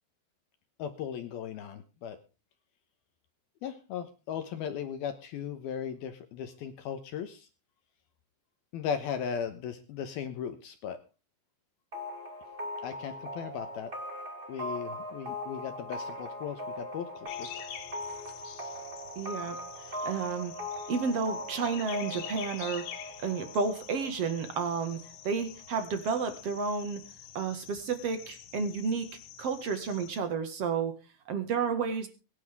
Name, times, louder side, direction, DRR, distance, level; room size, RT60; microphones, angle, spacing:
voice 1, 0.8-2.2 3.6-7.5 8.7-11.0 12.8-13.9 14.5-17.5, left 8 dB, 70° left, 8 dB, 2.6 m, -37 dB
sound 1, 11.9-25.4, left 1 dB, 30° right, 0.9 m, -40 dB
sound 2, 17.3-30.2, left 10 dB, 85° left, 4.2 m, -47 dB
voice 2, 19.2-19.6 20.0-20.5 20.9-22.9 23.2-25.0 25.2-27.0 27.3-30.9 31.3-32.1, right 5 dB, 55° right, 8 dB, 1.8 m, -31 dB
23.5 x 10.0 x 3.6 m, 0.33 s
omnidirectional pair, 5.3 m